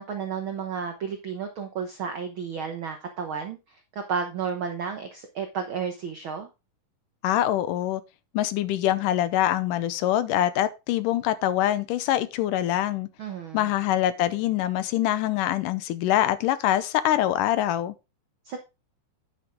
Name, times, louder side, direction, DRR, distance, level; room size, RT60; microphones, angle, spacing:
voice 1, 0.0-6.5 13.2-13.7 18.4-18.6, right 6 dB, 85° right, 1.1 m, -32 dB
voice 2, 7.2-8.0 8.3-13.1 13.5-17.9, left 12 dB, 80° left, 2.2 m, -24 dB
9.9 x 6.7 x 3.6 m
omnidirectional pair, 3.9 m